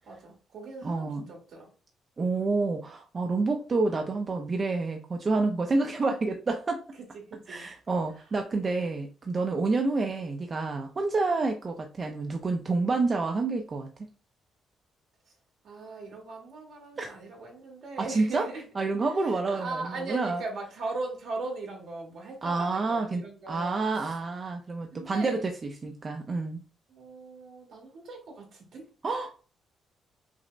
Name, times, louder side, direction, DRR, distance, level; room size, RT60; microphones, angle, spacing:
voice 1, 0.0-1.7 7.3-7.7 15.6-24.1 24.9-25.5 26.9-28.9, right 3 dB, 70° right, 0 dB, 1.6 m, -39 dB
voice 2, 0.8-1.2 2.2-6.8 7.5-13.9 17.0-17.1 18.0-18.5 18.8-20.4 22.4-26.6 29.0-29.4, right 3 dB, 35° right, 4 dB, 0.4 m, -28 dB
5.9 x 2.1 x 2.5 m, 0.37 s
cardioid pair, 90°, 0 cm